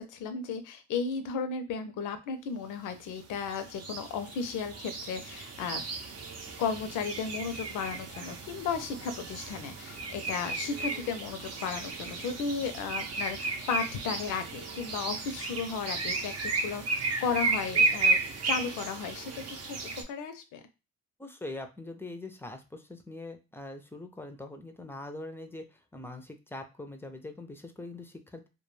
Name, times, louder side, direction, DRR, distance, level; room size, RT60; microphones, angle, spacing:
voice 1, 0.0-5.8 6.6-18.2 18.4-19.8 20.1-20.6, left 6 dB, 85° left, 8 dB, 0.6 m, -34 dB
sound 1, 3.2-20.0, right 3 dB, 60° right, 0.6 m, -33 dB
voice 2, 21.2-28.5, left 2 dB, 10° left, 6 dB, 0.4 m, -43 dB
2.2 x 2.2 x 3.1 m, 0.29 s
cardioid pair, 90°, 30 cm